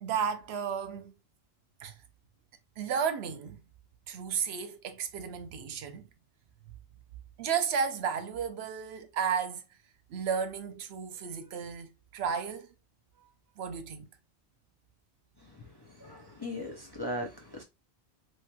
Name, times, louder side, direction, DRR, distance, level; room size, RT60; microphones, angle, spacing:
voice 1, 0.0-1.1 1.8-1.9 2.8-3.6 4.1-6.1 7.4-9.6 10.1-12.7 13.6-14.1, right 7 dB, 75° right, 0.8 m, -33 dB
voice 2, 16.0-17.6, left 1 dB, 30° left, 0.5 m, -38 dB
3.1 x 2.9 x 2.2 m
omnidirectional pair, 1.1 m